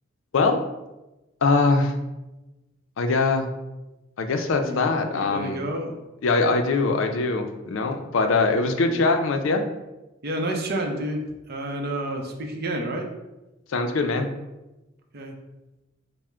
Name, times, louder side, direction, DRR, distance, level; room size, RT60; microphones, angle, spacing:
voice 1, 1.4-1.9 3.0-3.5 4.2-5.6 6.2-9.6 13.7-14.3, left 3 dB, 75° left, 6 dB, 0.4 m, -22 dB
voice 2, 5.0-5.9 7.1-7.2 8.8-9.0 10.2-11.2 11.5-13.1 15.1-15.4, right 1 dB, 50° right, 2 dB, 0.6 m, -30 dB
3.6 x 2.0 x 4.3 m, 1.0 s
head